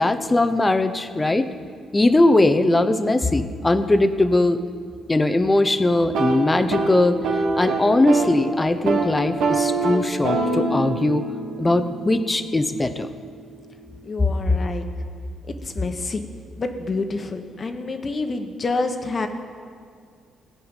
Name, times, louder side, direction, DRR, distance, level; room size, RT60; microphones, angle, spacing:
voice 1, 0.0-1.5 1.9-4.6 5.1-7.2 7.5-11.2 11.6-13.1 14.2-14.3, left 2 dB, 20° left, 10 dB, 0.8 m, -20 dB
sound 1, 6.0-8.4 8.7-9.1 9.4-13.2, right 3 dB, 85° right, 1.7 m, -25 dB
voice 2, 14.0-14.8 15.5-16.2 16.6-19.3, left 3 dB, 35° left, 6 dB, 1.2 m, -28 dB
16.5 x 5.5 x 9.0 m, 2.2 s
cardioid pair, 90°, 0 cm